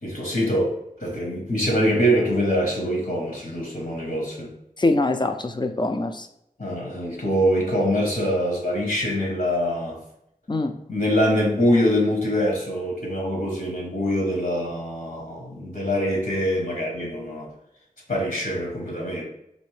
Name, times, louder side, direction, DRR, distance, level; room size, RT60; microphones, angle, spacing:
voice 1, 0.0-4.5 6.6-10.0 10.9-17.5 18.1-19.2, equal, 70° left, -1 dB, 1.0 m, -24 dB
voice 2, 4.8-6.3 10.5-10.8, left 2 dB, 30° left, 6 dB, 0.4 m, -23 dB
4.1 x 2.6 x 3.2 m, 0.79 s
wide cardioid pair, 45°, 15 cm